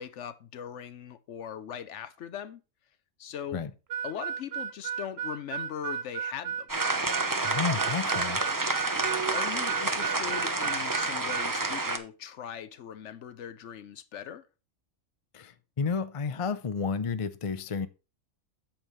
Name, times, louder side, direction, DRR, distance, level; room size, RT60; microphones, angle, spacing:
voice 1, 0.0-2.6 3.2-3.6 4.0-6.7 9.3-14.4, left 9 dB, 65° left, 0.9 m, -40 dB
Harmonica, 3.9-11.5, right 9 dB, 60° right, 0.8 m, -34 dB
sound 1, 6.7-12.0, right 3 dB, 20° right, 0.6 m, -29 dB
voice 2, 7.4-8.4 15.3-17.9, left 5 dB, 40° left, 0.4 m, -31 dB
8.8 x 7.3 x 3.2 m
omnidirectional pair, 1.4 m